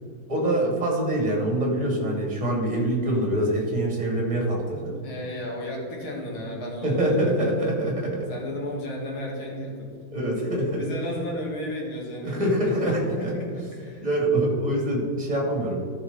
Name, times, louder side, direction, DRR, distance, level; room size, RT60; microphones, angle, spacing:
voice 1, 0.3-4.9 6.8-8.3 10.1-10.8 12.2-13.3 14.0-15.8, right 1 dB, 20° right, -1 dB, 2.6 m, -25 dB
voice 2, 5.0-7.7 8.3-9.9 10.7-12.7 13.0-14.1, left 1 dB, 85° left, -1 dB, 2.8 m, -34 dB
14.0 x 5.9 x 4.2 m, 2.3 s
omnidirectional pair, 2.2 m